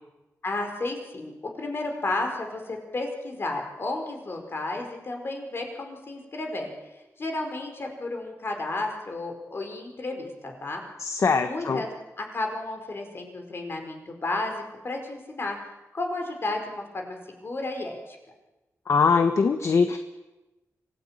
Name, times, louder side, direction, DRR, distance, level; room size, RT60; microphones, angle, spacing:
voice 1, 0.4-1.3 1.6-6.7 7.2-10.8 11.4-11.9 12.2-15.6 15.9-18.2, left 2 dB, 45° left, 3 dB, 5.0 m, -32 dB
voice 2, 11.0-11.8 18.9-20.0, left 5 dB, 60° left, 8 dB, 1.2 m, -22 dB
25.5 x 17.5 x 9.0 m, 1.1 s
wide cardioid pair, 140°, 6 cm